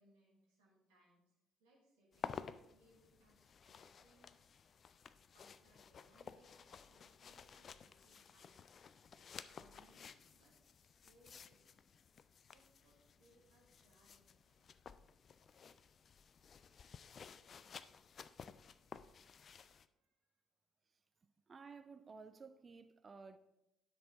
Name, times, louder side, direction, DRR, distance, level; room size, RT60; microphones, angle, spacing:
voice 1, 0.0-4.4 5.0-8.6 9.1-11.8 12.5-14.8 16.4-16.6 18.8-19.6 19.9-20.4, right 1 dB, 70° right, 1.9 m, -72 dB
sound 1, 2.1-19.9, left 6 dB, 45° left, 0.4 m, -54 dB
voice 2, 21.5-23.4, right 4 dB, 35° right, 0.5 m, -55 dB
10.0 x 6.3 x 3.6 m
figure-of-eight pair, 45°, 0 cm